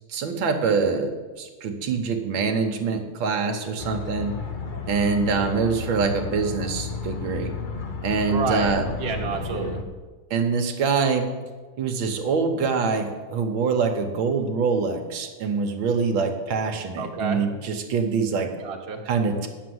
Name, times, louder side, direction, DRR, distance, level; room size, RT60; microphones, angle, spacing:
voice 1, 0.1-4.3 4.9-7.5 8.0-8.9 10.3-11.3 11.8-18.5 19.1-19.5, right 5 dB, 75° right, 5 dB, 1.7 m, -24 dB
sound 1, 3.8-9.8, left 4 dB, 70° left, 0.4 m, -32 dB
voice 2, 8.3-8.7 9.0-9.8 17.0-17.4 18.6-19.0, right 4 dB, 35° right, 1 dB, 1.3 m, -29 dB
9.3 x 7.0 x 7.7 m, 1.4 s
omnidirectional pair, 2.2 m